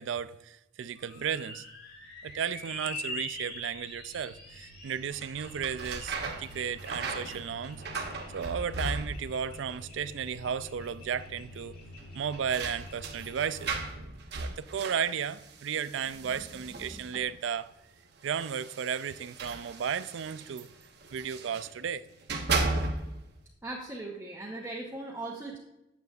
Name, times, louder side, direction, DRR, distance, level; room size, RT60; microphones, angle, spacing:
voice 1, 0.0-1.6 2.2-7.8 8.3-11.7 12.1-13.8 14.4-17.7 18.2-20.7 21.1-22.0, right 7 dB, 70° right, 0.4 m, -34 dB
sound 1, 0.9-13.8, left 1 dB, 50° left, 1.7 m, -45 dB
sound 2, 5.1-9.5 9.8-10.5 10.8-10.9 11.9-17.4 18.2-21.7 22.1-23.3, right 3 dB, 55° right, 0.9 m, -37 dB
voice 2, 23.6-25.6, right 2 dB, 10° right, 0.8 m, -38 dB
9.2 x 8.1 x 2.4 m
head